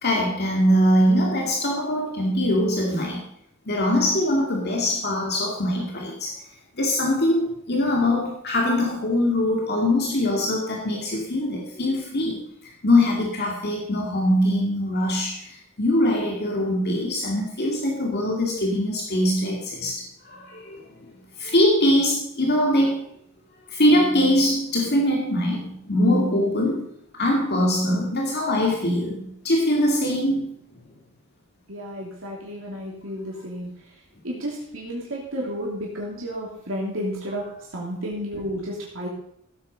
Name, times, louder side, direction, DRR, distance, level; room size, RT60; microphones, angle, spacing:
voice 1, 0.0-3.2 3.7-6.4 6.8-20.8 21.4-23.2 23.7-26.9 27.1-30.6, left 1 dB, 55° left, -1 dB, 2.3 m, -22 dB
voice 2, 31.7-33.7 34.2-37.4 37.7-39.1, equal, 70° right, -3 dB, 3.0 m, -32 dB
16.0 x 8.7 x 5.3 m, 0.72 s
head